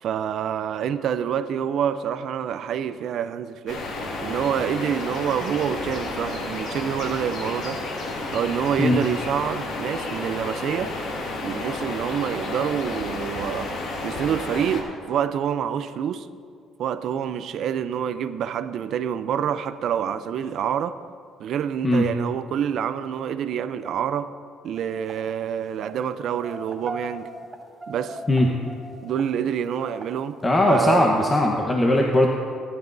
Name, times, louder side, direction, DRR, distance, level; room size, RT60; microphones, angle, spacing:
voice 1, 0.0-3.9 4.2-7.8 8.3-10.9 11.4-13.7 14.0-16.3 16.8-20.9 21.4-24.3 24.6-27.3 27.9-28.2 29.0-30.4 30.7-31.1, right 9 dB, 65° right, 0.5 m, -27 dB
sound 1, 3.7-14.8, left 2 dB, 70° left, 2.2 m, -31 dB
sound 2, 24.7-25.1 25.7-26.0 26.4-29.2 29.7-30.1 30.7-30.9 31.3-31.4, right 2 dB, 25° right, 1.6 m, -38 dB
voice 2, 30.4-32.3, left 1 dB, 20° left, 1.1 m, -19 dB
18.5 x 11.0 x 2.7 m
cardioid pair, 90°, 0 cm